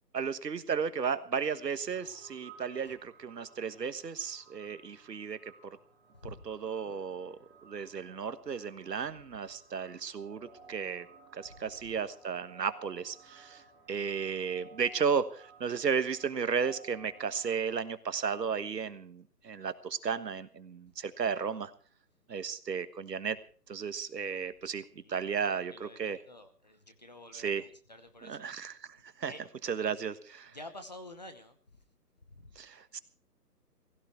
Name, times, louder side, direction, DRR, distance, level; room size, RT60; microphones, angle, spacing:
voice 1, 0.1-5.4 6.4-11.1 11.3-13.6 13.9-21.7 22.3-23.4 23.7-26.2 27.3-27.6 28.3-29.3 29.6-30.6 32.5-33.0, right 6 dB, 75° right, 13 dB, 1.5 m, -34 dB
sound 1, 1.8-17.5, right 4 dB, 10° right, 3.7 m, -57 dB
voice 2, 25.0-27.5 27.9-28.4 29.3-29.4 30.5-31.8 32.3-32.5, left 1 dB, 25° left, 9 dB, 0.9 m, -49 dB
16.0 x 16.0 x 4.6 m, 0.41 s
hypercardioid pair, 175°, 49 cm